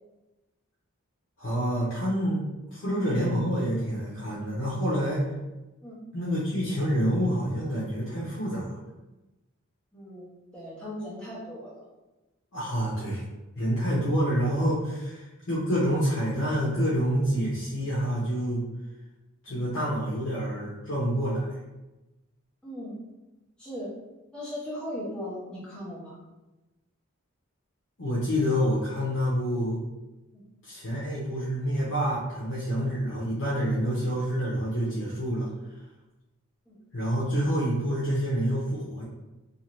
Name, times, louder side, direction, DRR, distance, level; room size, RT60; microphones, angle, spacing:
voice 1, 1.4-5.3 6.1-8.8 12.5-13.2 13.6-18.6 19.4-21.6 28.0-29.8 30.6-35.5 36.9-39.0, equal, 65° left, -8 dB, 0.8 m, -27 dB
voice 2, 9.9-10.3 10.5-11.9 19.5-19.6 22.6-23.0 23.6-23.9 24.3-26.2 30.3-30.4 36.7-36.8, equal, 5° left, -9 dB, 1.1 m, -38 dB
2.7 x 2.4 x 3.0 m, 1.1 s
head